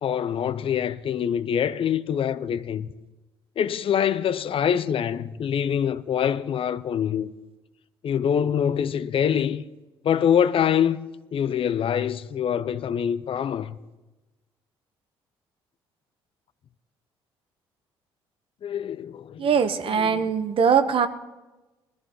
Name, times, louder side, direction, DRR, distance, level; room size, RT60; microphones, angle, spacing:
voice 1, 0.0-2.9 3.6-7.3 8.0-9.6 10.0-11.0 11.3-13.8 18.6-20.3, left 8 dB, 50° left, 0.7 m, -25 dB
voice 2, 19.4-21.1, right 7 dB, 50° right, 1.1 m, -21 dB
21.5 x 14.0 x 3.1 m
hypercardioid pair, 55°, 12 cm